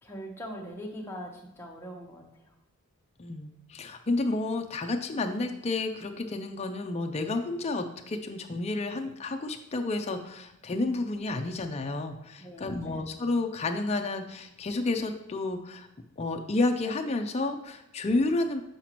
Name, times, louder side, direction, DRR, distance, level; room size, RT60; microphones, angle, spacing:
voice 1, 0.0-2.2 12.4-13.0, equal, 10° left, -1 dB, 0.9 m, -41 dB
voice 2, 3.2-15.9 16.2-18.6, left 2 dB, 30° left, 5 dB, 0.5 m, -30 dB
7.5 x 4.9 x 2.9 m, 0.87 s
head